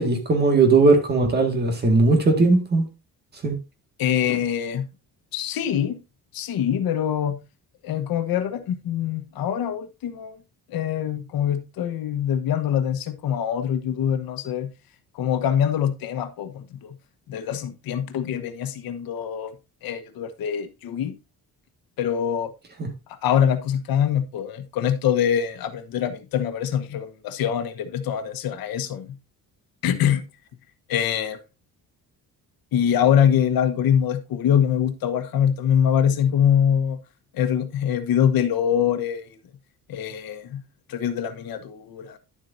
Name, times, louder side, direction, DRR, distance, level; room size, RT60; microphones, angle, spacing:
voice 1, 0.0-2.9 3.4-3.6 22.8-22.9, right 3 dB, 30° right, 1.9 m, -18 dB
voice 2, 4.0-4.9 5.3-6.0 6.3-7.4 7.8-10.4 10.7-14.7 15.1-16.9 17.3-19.5 19.8-21.1 22.0-22.5 23.2-29.2 29.8-30.2 30.9-31.4 32.7-37.0 37.3-39.4 39.9-40.6 40.9-42.2, left 9 dB, 75° left, 1.3 m, -24 dB
11.0 x 7.5 x 2.7 m
cardioid pair, 180°, 36 cm